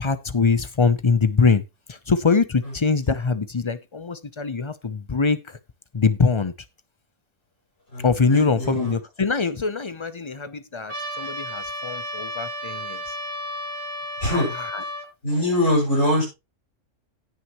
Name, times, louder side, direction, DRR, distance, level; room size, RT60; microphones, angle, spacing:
voice 1, 0.0-1.6 1.9-5.6 5.9-6.5 8.0-13.2 14.3-14.8, left 4 dB, 35° left, 0.4 m, -23 dB
voice 2, 7.9-8.9 14.2-14.5 15.2-16.2, left 1 dB, 55° left, 6.8 m, -23 dB
Trumpet, 10.9-15.1, equal, 80° right, 5.2 m, -33 dB
17.5 x 6.2 x 3.0 m
omnidirectional pair, 1.5 m